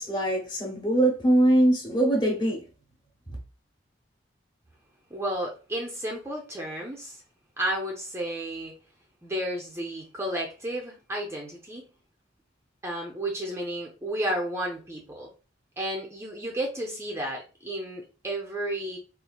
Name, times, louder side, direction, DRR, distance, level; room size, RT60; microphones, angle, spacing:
voice 1, 0.0-2.6, right 1 dB, 25° left, 1.0 m, -22 dB
voice 2, 5.1-7.2 7.6-8.7 9.2-11.8 12.8-15.3 15.8-19.0, right 1 dB, 15° right, 0.5 m, -32 dB
4.1 x 2.4 x 2.2 m
head